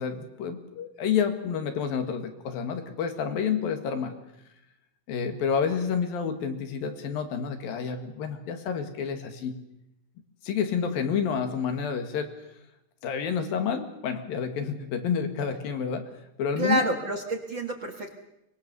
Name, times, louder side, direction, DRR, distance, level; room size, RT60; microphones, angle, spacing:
voice 1, 0.0-4.1 5.1-9.6 10.4-12.3 13.0-16.0 16.4-16.8, left 7 dB, 75° left, 7 dB, 3.7 m, -29 dB
voice 2, 16.6-18.1, right 2 dB, 40° right, 4 dB, 2.0 m, -28 dB
24.0 x 21.0 x 6.9 m, 0.86 s
omnidirectional pair, 4.1 m